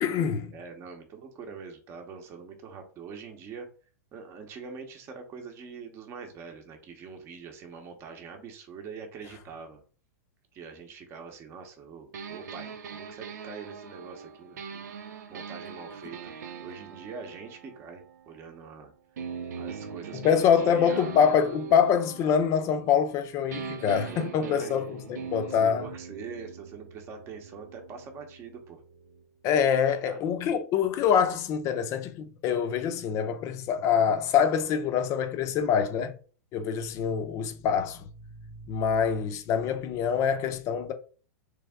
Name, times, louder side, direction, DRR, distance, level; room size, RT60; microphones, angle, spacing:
voice 1, 0.0-0.5 20.1-25.8 29.4-36.2 36.5-38.0 38.7-40.9, left 7 dB, 35° left, 0.6 m, -25 dB
voice 2, 0.5-3.7 4.1-9.8 10.5-15.0 15.3-18.9 19.5-21.1 23.6-24.8 25.5-28.8 30.1-30.6, right 5 dB, 30° right, 0.9 m, -44 dB
sound 1, 12.1-18.7 19.2-23.2 23.5-29.2, right 6 dB, 85° right, 0.6 m, -42 dB
3.4 x 3.4 x 3.5 m
hypercardioid pair, 140°, 9 cm